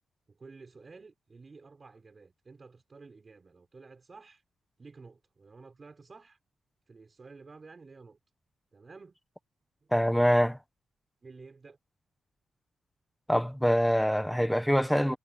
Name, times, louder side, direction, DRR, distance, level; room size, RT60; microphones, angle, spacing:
voice 1, 0.3-4.4 4.8-6.4 6.9-8.2 8.7-9.2 9.8-9.9 11.2-11.8, right 4 dB, 25° right, 6.0 m, -52 dB
voice 2, 9.9-10.6 13.3-15.2, equal, ahead, 1.0 m, -24 dB
wide cardioid pair, 175°, 0 cm